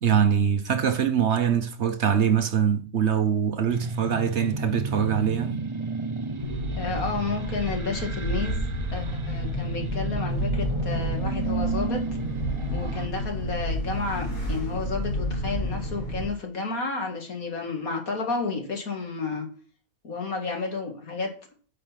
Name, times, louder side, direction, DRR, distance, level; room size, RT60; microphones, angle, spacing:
voice 1, 0.0-5.7, right 8 dB, 55° right, 1.0 m, -23 dB
sound 1, 3.7-13.1, right 3 dB, 35° right, 0.5 m, -32 dB
sound 2, 6.4-16.3, equal, 30° left, 4.4 m, -31 dB
voice 2, 6.8-8.6 8.9-12.0 12.7-19.5 20.0-21.3, left 4 dB, 75° left, 2.6 m, -31 dB
10.0 x 5.3 x 5.8 m
omnidirectional pair, 1.5 m